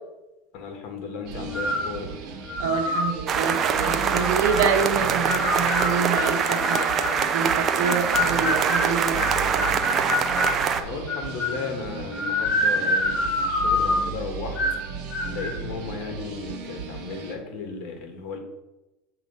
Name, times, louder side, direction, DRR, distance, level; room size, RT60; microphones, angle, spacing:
voice 1, 0.5-2.1 10.8-14.6 15.3-18.4, left 4 dB, 55° left, 4 dB, 1.5 m, -35 dB
sound 1, 1.3-17.4, right 5 dB, 55° right, 1.2 m, -36 dB
sound 2, 1.5-1.9 2.5-3.1 3.7-4.7 5.3-7.2 7.8-10.6 11.1-11.7 12.1-14.1 14.6-14.8 15.1-15.5, left 2 dB, 20° left, 2.0 m, -26 dB
voice 2, 2.6-9.7, right 6 dB, 75° right, 4 dB, 1.0 m, -27 dB
sound 3, 3.3-10.8, right 7 dB, 30° right, 0.5 m, -24 dB
7.3 x 3.0 x 5.4 m, 1.0 s
supercardioid pair, 130°, 0 cm